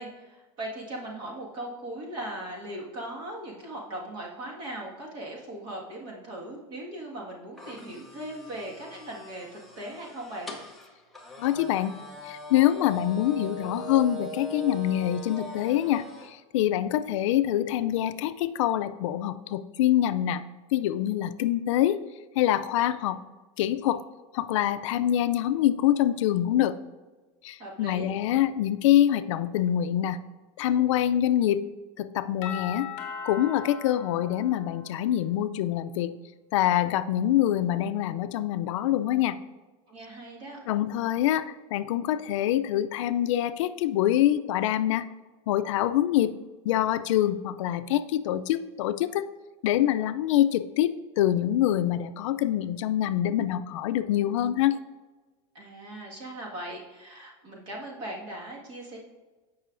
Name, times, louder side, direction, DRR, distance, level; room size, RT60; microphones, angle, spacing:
voice 1, 0.0-10.5 27.6-28.1 39.9-40.6 55.5-59.0, right 1 dB, 30° right, -2 dB, 1.7 m, -39 dB
sound 1, 7.6-16.3, equal, ahead, 0.7 m, -41 dB
voice 2, 11.4-11.9 12.2-20.4 20.7-22.0 22.4-23.2 23.6-24.0 24.3-26.8 27.4-30.2 30.6-31.6 32.0-32.9 33.2-36.1 36.5-39.4 40.7-45.1 45.5-46.4 46.6-49.3 49.6-54.8, left 12 dB, 75° left, 12 dB, 0.4 m, -25 dB
Doorbell, 32.4-35.2, left 7 dB, 35° left, 1.3 m, -39 dB
14.5 x 5.5 x 2.5 m, 1.3 s
supercardioid pair, 180°, 16 cm